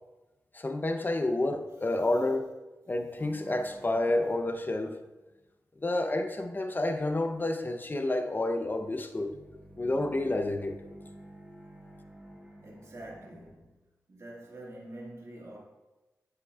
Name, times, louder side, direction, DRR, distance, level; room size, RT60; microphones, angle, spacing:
voice 1, 0.5-2.5 2.9-4.9 5.8-9.3 9.7-10.8, left 2 dB, 30° left, 0.7 m, -29 dB
sound 1, 3.2-5.4 9.0-13.6, right 1 dB, 10° right, 1.7 m, -51 dB
voice 2, 12.6-13.8 14.1-15.6, right 1 dB, 50° right, 1.9 m, -46 dB
7.5 x 6.4 x 2.4 m
cardioid pair, 50°, 6 cm